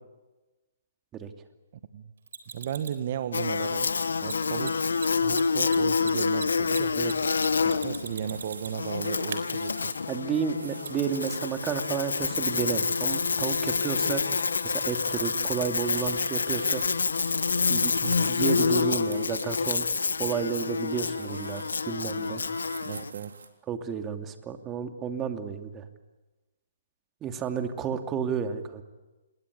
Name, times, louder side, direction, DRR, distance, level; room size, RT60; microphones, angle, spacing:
Mechanisms, 2.3-3.0 4.2-4.3 4.6-4.7 5.0-5.1 5.3-8.9 9.3-9.4 10.8-10.9, right 7 dB, 65° right, 4.0 m, -38 dB
voice 1, 2.5-3.9 4.2-4.8 5.2-7.0 7.8-9.9 18.0-18.3 22.8-23.4, right 9 dB, 50° right, 11 dB, 1.4 m, -35 dB
Buzz, 3.3-23.1, left 5 dB, 80° left, 1.0 m, -28 dB
sound 1, 8.0-23.5, right 4 dB, 85° right, 3.7 m, -46 dB
voice 2, 10.1-14.2 14.6-16.8 17.7-17.9 18.3-19.9 20.2-22.4 23.7-25.8 27.2-28.8, right 7 dB, 20° right, 6 dB, 2.6 m, -31 dB
27.0 x 22.0 x 8.3 m, 1.1 s
hypercardioid pair, 135°, 0 cm